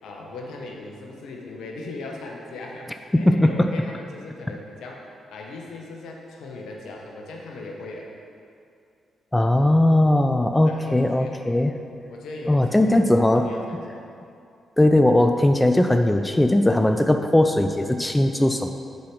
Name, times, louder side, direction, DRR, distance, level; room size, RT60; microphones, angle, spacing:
voice 1, 0.0-8.1 10.6-11.4 12.1-13.2 13.4-14.0, left 2 dB, 70° left, 0 dB, 1.1 m, -38 dB
voice 2, 3.1-3.7 9.3-11.7 12.5-13.5 14.8-18.7, left 1 dB, 15° left, 6 dB, 0.5 m, -19 dB
6.9 x 4.8 x 6.1 m, 2.4 s
hypercardioid pair, 40°, 0 cm